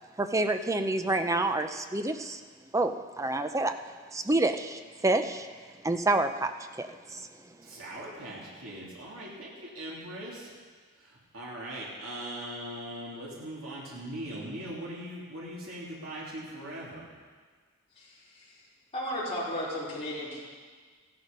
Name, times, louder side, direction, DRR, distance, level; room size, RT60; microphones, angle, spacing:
voice 1, 0.2-2.4 2.7-3.7 4.1-5.5 5.8-6.5 6.8-7.3, right 2 dB, 15° right, 8 dB, 0.6 m, -28 dB
voice 2, 7.6-10.5 11.0-17.1, right 1 dB, 65° right, -5 dB, 3.1 m, -40 dB
voice 3, 17.9-18.7 18.9-20.4, equal, 30° left, -8 dB, 4.7 m, -35 dB
14.5 x 11.5 x 5.4 m, 1.5 s
head